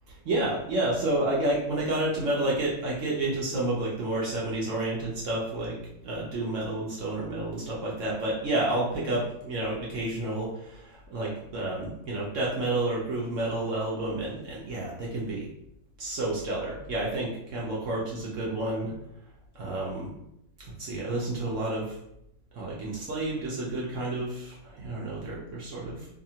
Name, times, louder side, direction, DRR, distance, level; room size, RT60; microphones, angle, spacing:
voice 1, 0.2-15.5 16.0-18.9 19.5-20.1 20.6-22.0 22.5-26.1, right 2 dB, 65° right, -4 dB, 0.8 m, -30 dB
2.7 x 2.5 x 2.7 m, 0.80 s
omnidirectional pair, 1.8 m